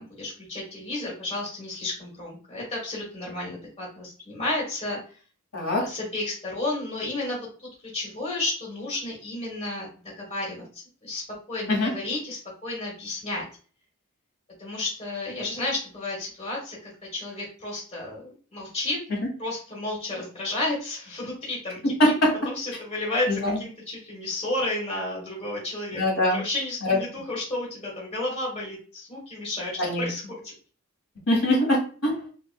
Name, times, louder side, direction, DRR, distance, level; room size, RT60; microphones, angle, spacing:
voice 1, 0.0-5.0 5.8-7.4 7.9-9.9 10.2-11.2 11.5-13.4 14.6-19.0 19.4-21.9 22.5-26.0 26.3-30.5, left 2 dB, 30° left, -4 dB, 1.6 m, -32 dB
voice 2, 5.5-5.8 11.7-11.9 22.0-22.3 23.3-23.6 25.9-26.4 26.8-27.0 29.8-30.1 31.3-32.3, left 1 dB, 70° left, -2 dB, 1.8 m, -22 dB
5.8 x 2.6 x 2.3 m, 0.40 s
head